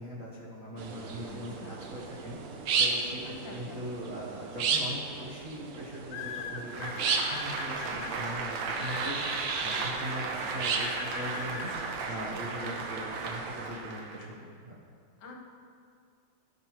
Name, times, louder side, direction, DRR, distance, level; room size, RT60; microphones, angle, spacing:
voice 1, 0.0-14.8, equal, 45° right, -6 dB, 1.3 m, -41 dB
sound 1, 0.8-13.7, right 5 dB, 90° right, 1.7 m, -35 dB
voice 2, 1.2-1.8 3.2-3.8 7.9-8.2 15.2-15.5, left 3 dB, 65° left, 0 dB, 1.8 m, -48 dB
sound 2, 4.6-4.9 6.1-8.1 8.8-9.8 10.6-11.7, left 8 dB, 90° left, 1.5 m, -40 dB
Applause, 6.6-14.3, right 4 dB, 70° right, 1.5 m, -36 dB
13.0 x 5.4 x 4.5 m, 2.2 s
omnidirectional pair, 2.4 m